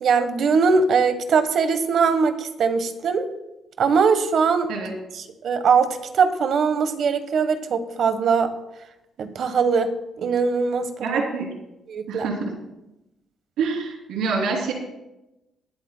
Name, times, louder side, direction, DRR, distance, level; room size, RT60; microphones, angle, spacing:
voice 1, 0.0-3.3 3.8-4.7 5.4-8.5 9.2-9.9 10.2-11.2 11.9-12.3, right 5 dB, 65° right, 9 dB, 1.2 m, -21 dB
voice 2, 11.0-11.5 12.1-12.5 13.6-14.7, right 4 dB, 90° right, 0 dB, 3.0 m, -26 dB
20.0 x 11.5 x 2.2 m, 0.93 s
cardioid pair, 90°, 0 cm